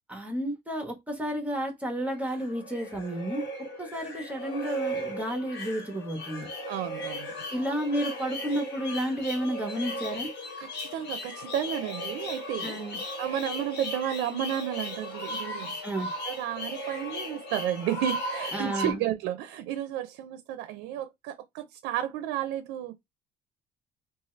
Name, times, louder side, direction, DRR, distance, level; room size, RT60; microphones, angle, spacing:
voice 1, 0.1-3.4 3.8-6.5 7.5-10.3 12.6-13.0 15.8-16.1 18.5-19.0, right 1 dB, 10° right, 0.7 m, -31 dB
sound 1, 2.0-18.9, equal, 85° left, 1.1 m, -36 dB
voice 2, 6.7-7.3 10.6-12.8 13.2-15.8 16.3-23.0, right 11 dB, 90° right, 0.4 m, -32 dB
2.7 x 2.3 x 3.0 m
cardioid pair, 110°, 17 cm